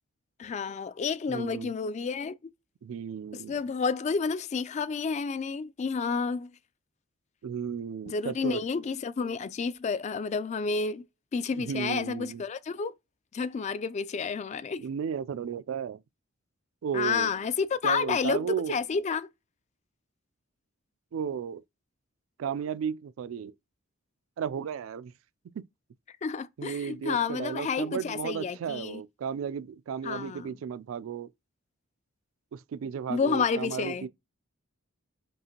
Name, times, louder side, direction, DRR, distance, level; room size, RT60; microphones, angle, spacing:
voice 1, 0.4-2.5 3.3-6.5 8.0-11.0 11.3-12.9 13.3-14.8 16.9-19.3 26.2-29.0 30.0-30.5 33.1-34.1, left 5 dB, 35° left, 0.3 m, -30 dB
voice 2, 1.3-1.7 2.8-3.5 7.4-8.6 11.6-12.4 14.8-16.0 16.8-17.3 17.8-18.8 21.1-21.6 22.4-23.5 24.4-25.1 26.6-31.3 32.5-34.1, right 7 dB, 80° right, 0.3 m, -34 dB
5.3 x 2.5 x 2.8 m
head